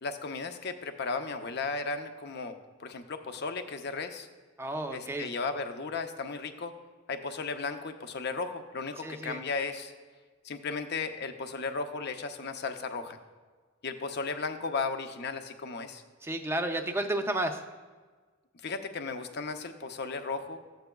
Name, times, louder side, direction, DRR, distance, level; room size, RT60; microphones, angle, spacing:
voice 1, 0.0-4.3 4.9-6.7 7.1-9.9 10.4-13.2 13.8-16.0 18.6-20.6, left 4 dB, 50° left, 7 dB, 0.6 m, -35 dB
voice 2, 4.6-5.3 9.0-9.4 16.2-17.6, right 1 dB, 10° right, 5 dB, 0.5 m, -32 dB
13.0 x 8.0 x 2.3 m, 1.4 s
head